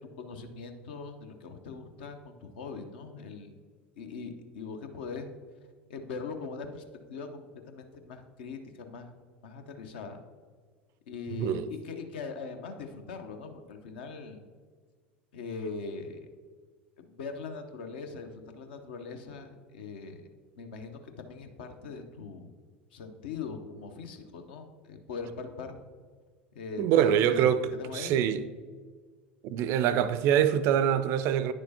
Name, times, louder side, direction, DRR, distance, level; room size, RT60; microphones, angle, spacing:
voice 1, 0.2-3.6 4.0-5.3 5.9-6.8 7.1-9.1 9.4-10.2 11.1-14.4 15.3-16.2 17.0-20.3 20.6-22.5 22.9-25.8 26.5-28.2, left 4 dB, 65° left, 0.7 m, -41 dB
voice 2, 26.8-27.6 27.9-28.4 29.4-31.5, right 10 dB, 50° right, 0.4 m, -24 dB
9.7 x 6.3 x 2.8 m
figure-of-eight pair, 70°, 6 cm